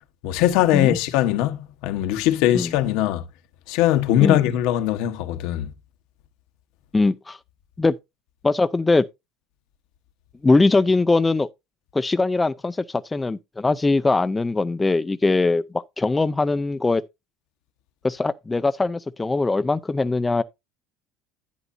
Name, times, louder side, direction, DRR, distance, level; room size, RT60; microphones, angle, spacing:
voice 1, 0.2-3.2 3.7-5.7, left 13 dB, 70° left, 1.2 m, -21 dB
voice 2, 6.9-7.4 7.8-8.0 8.4-9.1 10.4-11.5 11.9-17.0 18.0-20.4, left 3 dB, 10° left, 0.4 m, -21 dB
11.0 x 9.4 x 2.7 m
cardioid pair, 150°, 0 cm